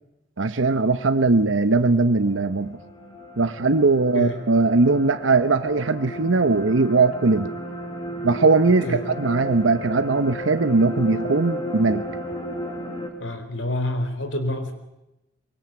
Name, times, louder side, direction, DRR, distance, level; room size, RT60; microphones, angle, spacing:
voice 1, 0.4-2.8 3.4-7.5 8.2-12.0, right 3 dB, 85° right, 9 dB, 1.0 m, -20 dB
sound 1, 1.5-13.1, equal, 25° left, 4.0 m, -34 dB
voice 2, 8.6-9.1 13.2-14.7, left 1 dB, 80° left, 8 dB, 4.1 m, -27 dB
24.0 x 23.5 x 8.9 m, 0.95 s
head